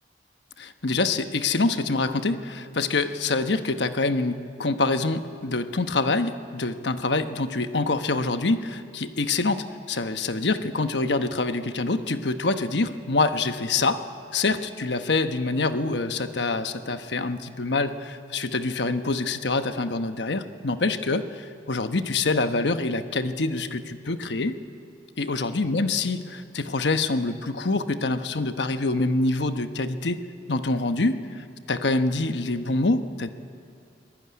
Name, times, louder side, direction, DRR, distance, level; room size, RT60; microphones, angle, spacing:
voice 1, 0.6-14.0 14.3-24.6 25.2-30.2 30.5-33.3, left 3 dB, 80° left, 9 dB, 1.1 m, -26 dB
24.0 x 18.5 x 9.6 m, 2.4 s
head